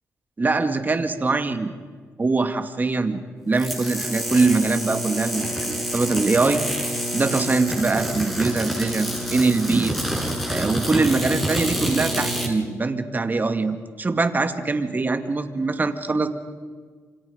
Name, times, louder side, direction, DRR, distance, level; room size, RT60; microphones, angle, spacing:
voice 1, 0.4-1.7 2.2-3.2 3.5-6.6 7.1-10.0 10.5-16.3, right 3 dB, 35° right, 8 dB, 2.3 m, -23 dB
sound 1, 3.5-12.5, equal, ahead, 7.3 m, -27 dB
28.5 x 26.0 x 5.3 m, 1.6 s
cardioid pair, 65°, 5 cm